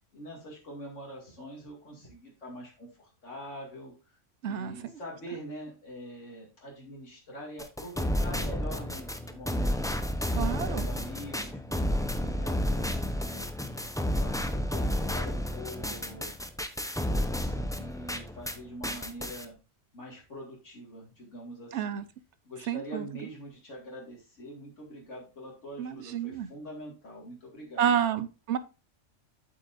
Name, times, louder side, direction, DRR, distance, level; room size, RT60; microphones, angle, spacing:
voice 1, 0.1-3.9 4.4-9.9 10.3-16.3 16.9-19.5 19.9-22.0 22.4-28.0, equal, 80° left, 2.6 m, -44 dB
voice 2, 4.4-4.8 10.3-10.9 21.7-22.0 22.7-23.1 25.8-26.5 27.8-28.6, right 9 dB, 70° right, 1.0 m, -29 dB
sound 1, 7.6-18.6 18.8-19.4, left 1 dB, 5° left, 0.5 m, -31 dB
8.4 x 7.9 x 2.5 m
omnidirectional pair, 1.3 m